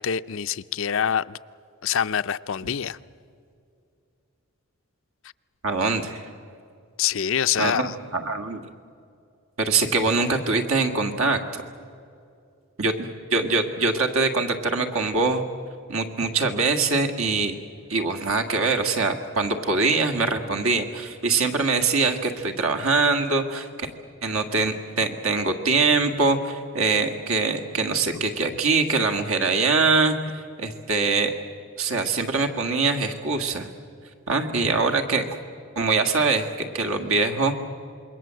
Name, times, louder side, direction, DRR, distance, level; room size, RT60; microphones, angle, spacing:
voice 1, 0.0-1.4 1.8-3.0 7.0-7.9, left 8 dB, 60° left, 14 dB, 0.5 m, -25 dB
voice 2, 5.6-6.2 7.6-8.6 9.6-11.4 12.8-15.4 15.9-17.5 17.9-23.9 24.2-31.3 31.8-33.7 34.3-35.3 35.8-37.6, right 4 dB, 70° right, 6 dB, 1.9 m, -23 dB
27.0 x 22.0 x 7.6 m, 2.5 s
head